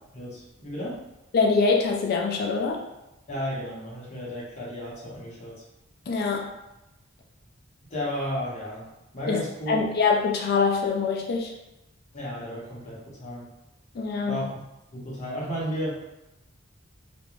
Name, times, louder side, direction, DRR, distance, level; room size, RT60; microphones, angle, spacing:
voice 1, 0.1-1.0 3.3-5.6 7.9-8.9 9.1-9.9 12.1-13.5 14.3-14.6 14.9-15.9, equal, 35° left, -7 dB, 0.8 m, -33 dB
voice 2, 1.3-2.8 6.1-6.5 9.3-9.4 9.7-11.5 14.0-14.5, left 4 dB, 50° left, 0 dB, 0.3 m, -24 dB
2.4 x 2.1 x 3.0 m, 0.93 s
head